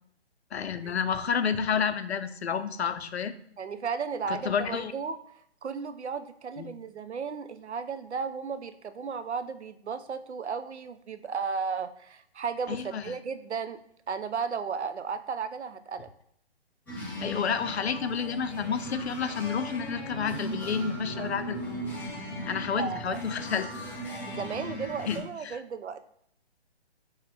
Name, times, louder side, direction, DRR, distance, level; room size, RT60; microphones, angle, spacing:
voice 1, 0.5-3.3 4.3-4.9 6.6-6.7 12.7-13.2 17.2-21.6 22.5-23.7 25.1-25.6, left 7 dB, 70° left, 11 dB, 0.7 m, -30 dB
voice 2, 3.6-5.2 5.6-13.8 14.1-16.1 21.1-21.3 22.8-23.2 24.2-26.1, right 5 dB, 85° right, 10 dB, 0.8 m, -34 dB
sound 1, 16.9-25.2, equal, 5° left, 0.9 m, -37 dB
9.1 x 3.2 x 3.5 m, 0.67 s
hypercardioid pair, 145°, 33 cm